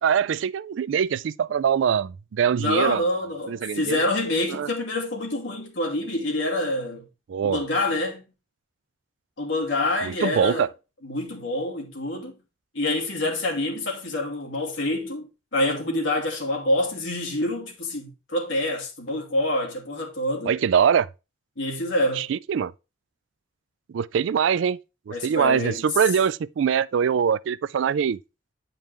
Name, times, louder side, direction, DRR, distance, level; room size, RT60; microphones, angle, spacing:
voice 1, 0.0-3.0 3.5-4.0 4.5-4.7 7.3-7.6 10.0-10.7 20.5-21.1 22.1-22.7 23.9-24.8 25.1-28.2, right 7 dB, 75° right, 0.3 m, -23 dB
voice 2, 2.6-7.0 7.4-8.2 9.4-10.7 11.0-12.3 12.7-20.6 21.6-22.3 25.1-25.8, left 1 dB, 75° left, 2.4 m, -26 dB
8.8 x 5.4 x 3.3 m
head